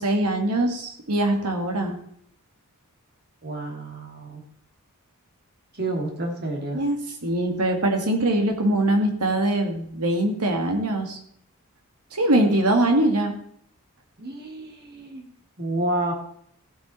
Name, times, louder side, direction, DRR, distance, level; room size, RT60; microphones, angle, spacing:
voice 1, 0.0-2.0 6.7-11.2 12.1-13.3, right 1 dB, 90° right, 4 dB, 2.3 m, -22 dB
voice 2, 3.4-4.4 5.7-6.8 14.2-15.3 15.6-16.1, right 1 dB, 45° right, 1 dB, 3.1 m, -29 dB
15.5 x 8.3 x 4.5 m, 0.67 s
head